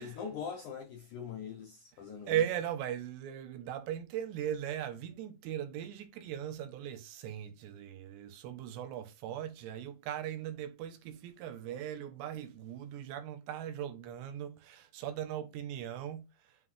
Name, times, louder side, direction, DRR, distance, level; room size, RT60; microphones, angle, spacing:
voice 1, 0.0-2.4, left 7 dB, 80° left, 1.7 m, -42 dB
voice 2, 2.3-16.6, right 10 dB, 85° right, 3.1 m, -38 dB
7.4 x 4.0 x 3.2 m
omnidirectional pair, 4.9 m